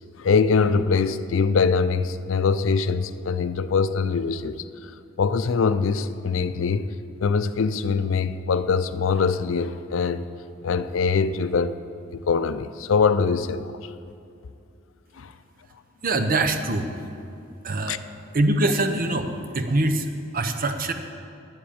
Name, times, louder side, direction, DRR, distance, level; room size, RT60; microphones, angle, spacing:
voice 1, 0.2-4.6 5.2-6.9 7.2-10.3 10.6-11.8 12.1-13.9 15.2-15.3 17.9-18.0, left 5 dB, 80° left, 12 dB, 0.5 m, -23 dB
voice 2, 16.0-16.9 17.6-18.0 18.3-20.9, right 2 dB, 45° right, 7 dB, 0.8 m, -24 dB
9.9 x 7.7 x 8.6 m, 2.5 s
head